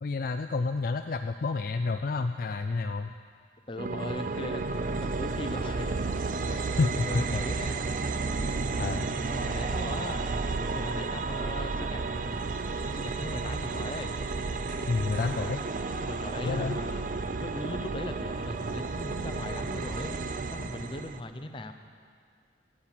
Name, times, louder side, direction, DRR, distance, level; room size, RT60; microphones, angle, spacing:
voice 1, 0.0-3.1 6.8-7.2 8.8-9.1 14.9-15.6 16.4-16.8, left 3 dB, 50° left, 7 dB, 0.4 m, -29 dB
voice 2, 3.7-4.6 5.0-6.0 6.5-6.8 7.0-7.9 9.3-10.3 10.7-12.0 12.8-14.1 16.0-17.0 17.4-21.7, left 1 dB, 25° left, 6 dB, 0.8 m, -39 dB
sound 1, 3.8-21.2, right 3 dB, 45° right, 0.5 m, -32 dB
sound 2, 5.3-15.4, equal, 65° right, 4.2 m, -54 dB
14.5 x 9.9 x 7.4 m, 2.1 s
head